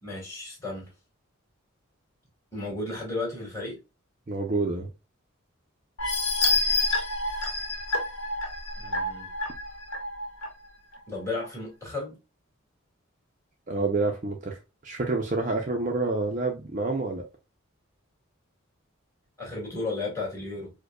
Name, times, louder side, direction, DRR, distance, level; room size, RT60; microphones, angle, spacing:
voice 1, 0.0-0.9 2.5-3.8 8.8-9.3 11.1-12.2 19.4-20.7, left 2 dB, 15° left, 1.9 m, -34 dB
voice 2, 4.3-4.9 13.7-14.6 14.8-17.2, right 3 dB, 35° right, 0.6 m, -28 dB
sound 1, 6.0-10.5 11.0-11.1 11.4-11.5, left 2 dB, 60° left, 1.2 m, -28 dB
4.9 x 2.2 x 2.3 m
head